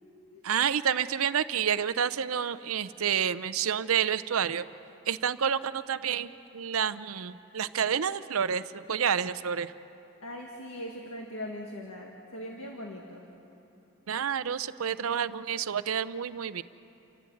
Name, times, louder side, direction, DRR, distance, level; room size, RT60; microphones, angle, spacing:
voice 1, 0.4-4.7 5.1-9.7 14.1-16.6, right 8 dB, 80° right, 14 dB, 0.6 m, -29 dB
voice 2, 10.2-13.2, left 1 dB, 80° left, 0 dB, 1.9 m, -40 dB
29.0 x 14.5 x 8.5 m, 2.9 s
head